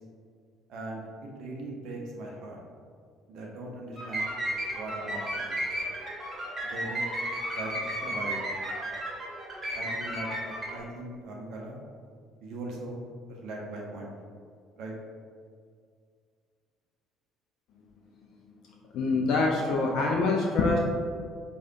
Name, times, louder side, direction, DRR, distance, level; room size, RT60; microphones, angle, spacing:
voice 1, 0.7-1.1 1.4-2.6 3.3-4.3 4.7-5.6 6.7-7.0 7.5-8.4 9.7-11.8 12.4-13.0 13.3-14.1 14.8-14.9, right 2 dB, 55° right, -1 dB, 0.6 m, -39 dB
sound 1, 4.0-10.8, right 1 dB, 30° right, 1.3 m, -33 dB
voice 2, 18.9-20.8, left 3 dB, 55° left, -1 dB, 0.4 m, -25 dB
4.8 x 2.3 x 2.7 m, 2.1 s
figure-of-eight pair, 55°, 0 cm